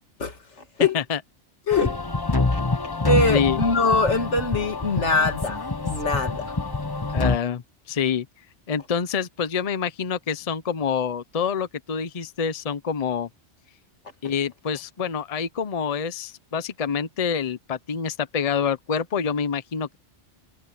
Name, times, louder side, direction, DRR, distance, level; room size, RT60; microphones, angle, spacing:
voice 1, 1.7-2.0 2.5-2.6 3.0-6.5, left 3 dB, 85° left, 2.3 m, -23 dB
sound 1, 1.7-7.4, left 3 dB, 20° left, 1.1 m, -26 dB
voice 2, 3.2-3.6 7.1-8.3 8.7-13.3 14.2-20.0, left 7 dB, 35° left, 0.8 m, -26 dB
omnidirectional pair, 1.2 m